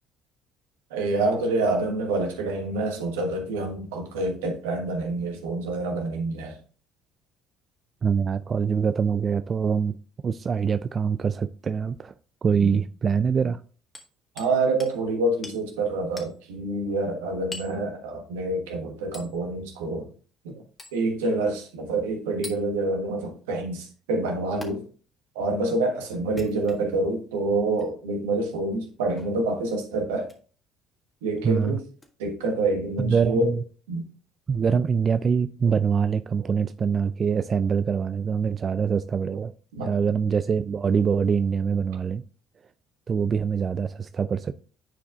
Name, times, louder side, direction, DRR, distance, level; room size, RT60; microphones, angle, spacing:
voice 1, 0.9-6.6 12.6-12.8 14.4-20.1 20.4-20.5 20.9-24.8 25.3-30.3 31.2-31.8 32.2-33.5 33.9-34.0 39.7-39.9, right 2 dB, 80° right, 1.3 m, -27 dB
voice 2, 8.0-10.0 10.2-12.1 12.4-13.6 31.4-31.8 33.0-33.6 34.5-39.5 39.8-42.2 43.1-44.6, right 6 dB, 40° right, 0.3 m, -24 dB
Hammer, 13.9-14.5 14.8-15.0 15.4-15.6 16.2-16.4 17.5-17.8 19.1-19.3 20.8-21.0 22.4-22.6 24.6-24.7 26.2-27.0 27.7-27.9 29.2-29.4 30.2-30.4 32.0-32.1, left 2 dB, 20° left, 1.6 m, -41 dB
9.7 x 4.7 x 2.4 m
hypercardioid pair, 60°, 0 cm